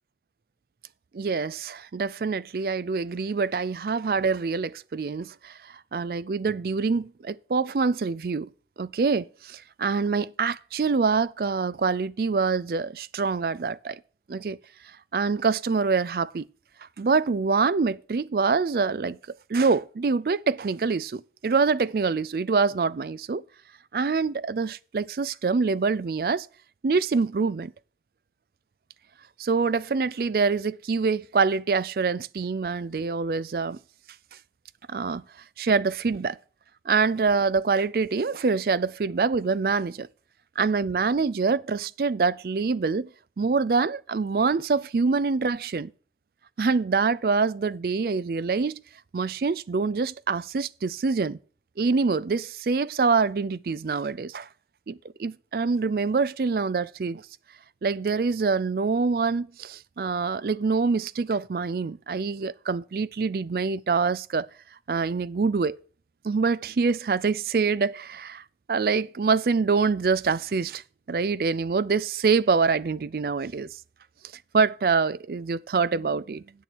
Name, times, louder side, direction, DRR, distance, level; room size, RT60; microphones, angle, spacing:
voice 1, 1.1-8.5 8.8-14.0 14.3-14.6 15.1-16.4 17.0-23.4 23.9-26.5 26.8-27.7 29.4-33.8 34.9-35.2 35.6-36.4 36.9-40.1 40.6-43.1 43.4-45.9 46.6-48.8 49.1-51.4 51.8-54.5 54.9-57.2 57.8-64.5 64.9-65.8 66.2-68.4 68.7-70.8 71.1-73.7 74.5-76.4, right 4 dB, 55° right, 0.4 m, -25 dB
8.4 x 7.0 x 6.1 m
head